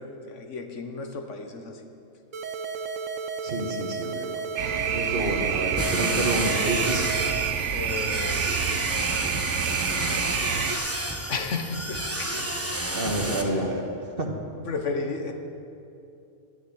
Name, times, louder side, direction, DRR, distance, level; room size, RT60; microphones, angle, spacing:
voice 1, 0.2-1.8 7.6-9.1 11.3-12.7 13.1-13.7 14.7-15.3, left 4 dB, 80° left, 5 dB, 1.5 m, -33 dB
sound 1, 2.3-7.4, right 5 dB, 90° right, 1.3 m, -33 dB
voice 2, 3.4-4.4 4.9-7.1 12.9-13.8 14.2-14.3, right 1 dB, 50° right, 2 dB, 1.6 m, -29 dB
sound 2, 4.6-10.7, right 8 dB, 75° right, 1.0 m, -28 dB
sound 3, 5.8-13.4, right 1 dB, 15° right, 1.0 m, -30 dB
11.0 x 10.5 x 8.7 m, 2.6 s
omnidirectional pair, 1.3 m